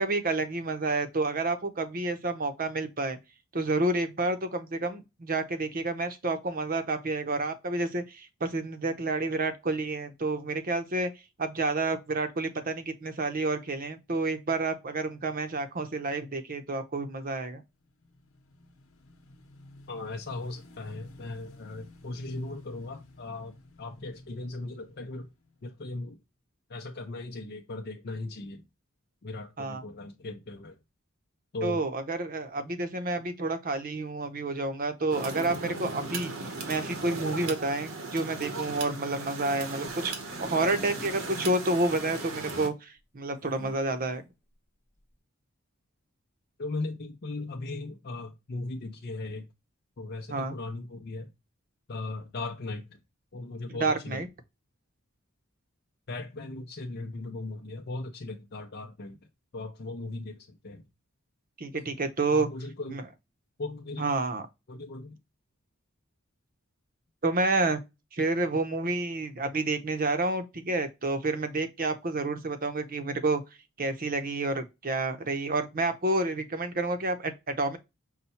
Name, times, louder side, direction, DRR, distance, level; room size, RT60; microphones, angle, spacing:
voice 1, 0.0-3.2 3.5-11.1 11.4-17.6 29.6-29.8 31.6-40.1 40.4-44.2 50.3-50.6 53.7-54.3 61.6-62.5 62.9-63.0 64.0-64.5 67.2-67.8 68.1-73.4 73.8-77.8, right 2 dB, 45° right, 0.8 m, -29 dB
Motorcycle / Engine, 17.6-26.1, left 1 dB, 90° left, 0.9 m, -53 dB
voice 2, 19.9-25.3 25.6-26.2 26.7-28.7 29.2-30.8 31.5-31.8 46.6-49.5 50.0-51.3 51.9-53.0 53.3-54.2 56.1-59.2 59.5-60.8 62.3-63.0 63.6-64.1 64.7-65.2, left 2 dB, 50° left, 0.6 m, -38 dB
sound 1, 35.1-42.7, right 3 dB, 75° right, 1.0 m, -37 dB
sound 2, 40.0-41.4 41.9-42.0 42.1-42.2 43.4-44.3 45.0-45.2, left 1 dB, 10° left, 0.6 m, -48 dB
5.6 x 2.2 x 4.2 m
head